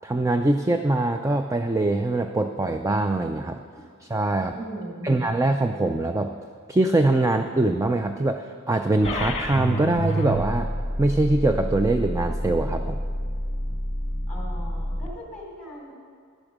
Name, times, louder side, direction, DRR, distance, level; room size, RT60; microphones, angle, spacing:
voice 1, 0.0-3.6 4.1-4.5 5.0-6.3 6.7-10.7 11.0-13.0, right 2 dB, 15° right, 6 dB, 0.3 m, -23 dB
voice 2, 4.5-5.3 14.3-15.9, right 1 dB, 5° left, -3 dB, 3.5 m, -38 dB
sound 1, 9.0-15.1, equal, 30° left, 1.3 m, -28 dB
11.0 x 8.7 x 6.1 m, 2.2 s
head